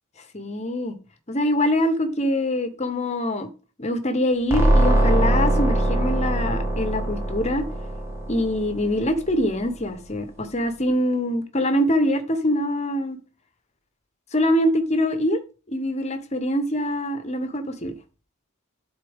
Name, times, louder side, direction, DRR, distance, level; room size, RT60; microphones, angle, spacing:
voice 1, 0.3-1.0 1.3-3.5 3.8-7.7 8.3-13.2 14.3-15.4 15.7-17.9, left 1 dB, 30° left, 0.9 m, -24 dB
sound 1, 4.5-9.2, right 1 dB, 15° right, 1.4 m, -22 dB
11.0 x 4.0 x 3.5 m
head